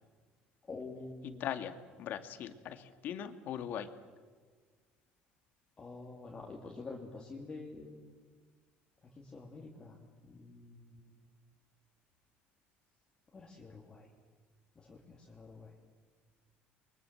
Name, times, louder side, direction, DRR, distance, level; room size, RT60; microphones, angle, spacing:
voice 1, 0.7-1.5 5.8-8.0 9.1-10.0 10.2-11.2 13.3-14.1 14.7-15.7, left 3 dB, 20° left, -2 dB, 3.1 m, -47 dB
voice 2, 1.4-3.9, left 9 dB, 55° left, 9 dB, 2.0 m, -40 dB
29.0 x 23.5 x 7.9 m, 1.5 s
cardioid pair, 140°, 4 cm